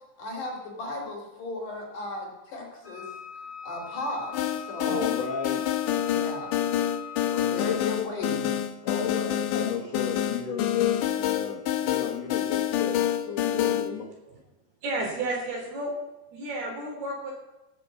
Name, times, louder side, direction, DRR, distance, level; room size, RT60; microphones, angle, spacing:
voice 1, 0.2-3.1 3.6-5.1 6.1-6.6 7.3-8.6, left 2 dB, 50° left, -1 dB, 4.6 m, -35 dB
Wind instrument woodwind instrument, 2.8-8.0, left 10 dB, 25° left, 1.9 m, -42 dB
sound 1, 4.3-13.9, left 10 dB, 85° left, 1.8 m, -27 dB
voice 2, 4.9-5.6 7.5-7.8 8.8-14.1, left 6 dB, 70° left, 1 dB, 1.5 m, -33 dB
voice 3, 14.8-15.9 16.3-17.3, right 2 dB, 65° right, 0 dB, 5.4 m, -31 dB
16.5 x 7.7 x 8.1 m, 1.0 s
omnidirectional pair, 5.0 m